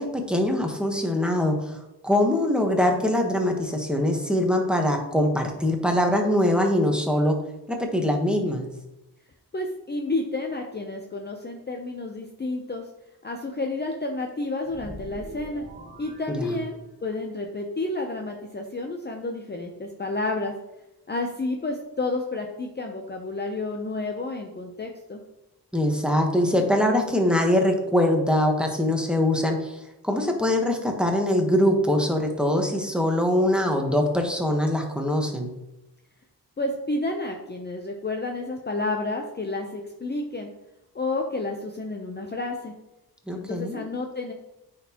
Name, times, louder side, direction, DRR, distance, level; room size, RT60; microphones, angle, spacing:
voice 1, 0.0-1.8 2.0-7.4 7.7-8.7 16.3-16.4 25.7-35.5 43.3-43.8, left 1 dB, ahead, 2 dB, 1.1 m, -23 dB
voice 2, 9.5-12.9 13.2-15.7 16.0-20.5 21.1-25.2 36.6-40.5 40.9-42.7 43.3-44.3, left 2 dB, 25° left, 2 dB, 0.6 m, -30 dB
sound 1, 14.6-17.2, right 2 dB, 25° right, 1.8 m, -44 dB
9.3 x 4.2 x 2.9 m, 0.94 s
cardioid pair, 75°, 42 cm